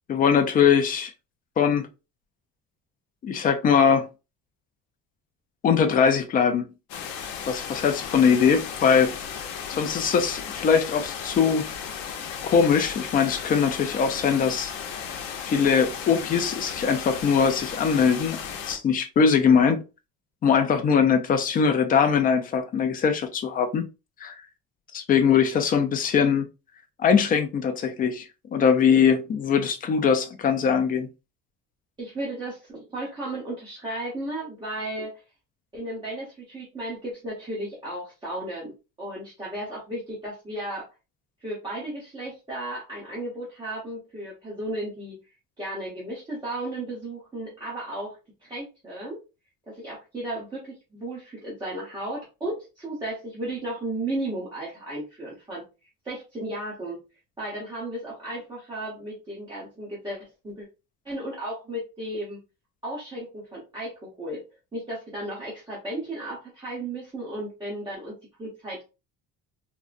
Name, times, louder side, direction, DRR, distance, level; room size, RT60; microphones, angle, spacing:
voice 1, 0.1-1.1 1.6-1.9 3.2-4.1 5.6-6.7 7.5-9.1 9.7-11.6 12.4-14.7 15.5-18.4 18.7-19.8 20.4-23.8 24.2-24.3 24.9-26.5 27.0-31.1, left 6 dB, 30° left, 0.3 m, -21 dB
sound 1, 6.9-18.8, left 7 dB, 85° left, 0.8 m, -35 dB
voice 2, 32.0-35.2 35.7-40.9 41.4-45.2 45.6-49.2 49.7-55.6 56.0-57.0 57.4-60.2 60.4-60.7 61.0-62.4 62.8-64.4 64.7-68.8, right 1 dB, 15° right, 0.9 m, -34 dB
3.7 x 2.1 x 2.4 m
cardioid pair, 170°, 32 cm